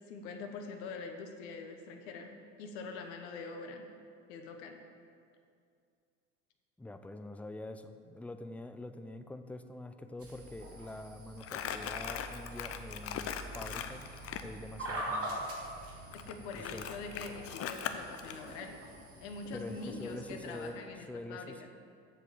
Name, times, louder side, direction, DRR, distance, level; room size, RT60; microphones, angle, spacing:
voice 1, 0.1-2.3 2.6-3.9 4.3-4.8 16.1-18.7 19.2-21.7, left 4 dB, 65° left, 5 dB, 1.2 m, -44 dB
voice 2, 6.8-14.0 14.4-15.5 16.6-16.9 19.5-21.7, left 2 dB, 5° left, 9 dB, 0.5 m, -45 dB
sound 1, 10.2-20.7, right 1 dB, 40° right, 2.4 m, -44 dB
Crumpling crinkling, 11.4-14.5 16.1-18.4, left 9 dB, 40° left, 0.7 m, -39 dB
7.4 x 7.0 x 7.1 m, 2.3 s
figure-of-eight pair, 60°, 36 cm